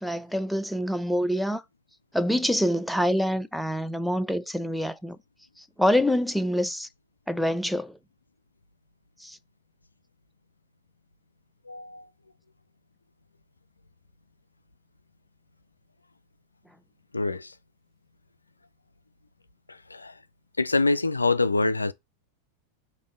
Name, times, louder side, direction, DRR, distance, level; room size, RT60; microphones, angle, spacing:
voice 1, 0.0-1.6 2.1-5.2 5.8-6.9 7.3-8.0 9.2-9.4, equal, ahead, 0.4 m, -26 dB
voice 2, 11.7-12.1 17.1-17.5 19.7-20.1 20.6-21.9, left 3 dB, 80° left, 0.3 m, -25 dB
5.3 x 2.6 x 3.6 m
figure-of-eight pair, 90°, 0 cm